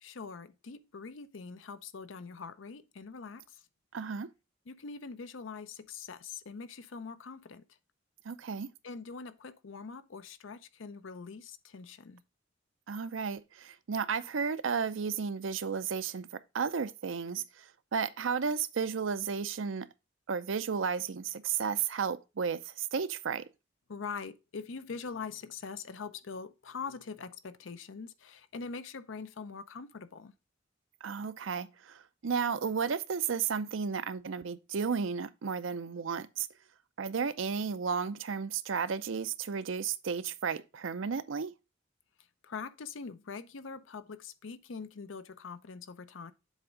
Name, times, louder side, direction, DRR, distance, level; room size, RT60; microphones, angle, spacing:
voice 1, 0.0-3.6 4.7-7.7 8.8-12.2 23.9-30.3 42.4-46.3, left 5 dB, 80° left, 0.6 m, -43 dB
voice 2, 3.9-4.3 8.2-8.7 12.9-16.3 16.5-19.9 20.3-23.4 31.0-36.5 37.0-41.5, right 6 dB, 80° right, 0.6 m, -33 dB
7.4 x 3.5 x 5.0 m
head